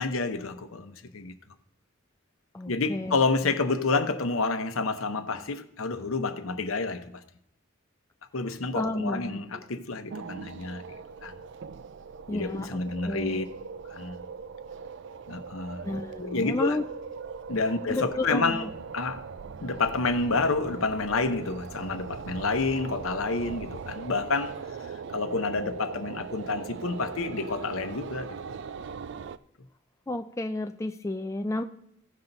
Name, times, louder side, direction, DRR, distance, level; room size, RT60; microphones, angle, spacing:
voice 1, 0.0-1.3 2.7-7.2 8.3-11.3 12.3-13.4 13.9-14.2 15.3-16.8 17.5-19.3 19.6-28.4, left 3 dB, 75° left, 0.9 m, -29 dB
voice 2, 2.5-3.2 8.7-9.6 12.3-13.4 15.8-16.8 17.9-18.7 30.1-31.6, left 2 dB, 15° left, 0.4 m, -31 dB
sound 1, 10.1-29.4, right 5 dB, 55° right, 0.4 m, -40 dB
16.0 x 5.6 x 4.0 m
head